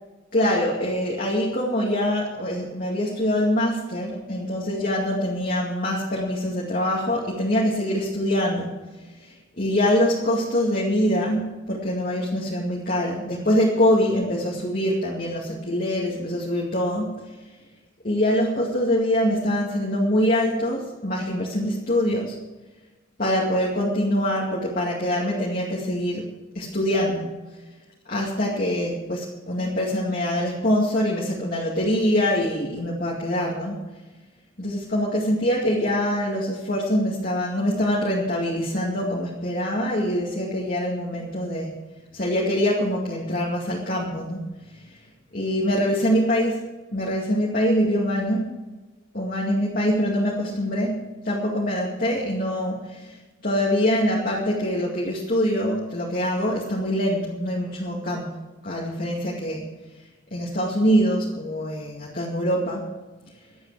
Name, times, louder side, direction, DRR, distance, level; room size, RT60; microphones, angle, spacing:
voice 1, 0.3-8.7 9.0-17.4 18.0-22.4 23.2-26.3 26.5-27.3 28.1-33.8 34.6-41.7 42.1-44.4 44.7-45.0 45.3-46.7 46.9-48.5 49.1-58.3 58.6-59.7 60.3-62.8, equal, 45° left, -4 dB, 2.3 m, -24 dB
23.0 x 8.6 x 4.9 m, 1.2 s
head